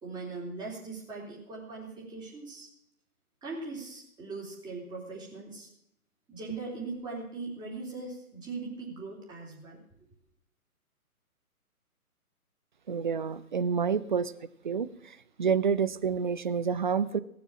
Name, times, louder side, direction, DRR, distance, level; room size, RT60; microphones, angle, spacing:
voice 1, 0.0-2.7 3.4-5.7 6.3-9.8 13.8-13.9, right 3 dB, 10° right, -3 dB, 3.4 m, -40 dB
voice 2, 12.9-14.3 14.6-17.2, right 6 dB, 35° right, 15 dB, 0.6 m, -28 dB
18.0 x 7.2 x 7.4 m, 0.74 s
figure-of-eight pair, 140°, 44 cm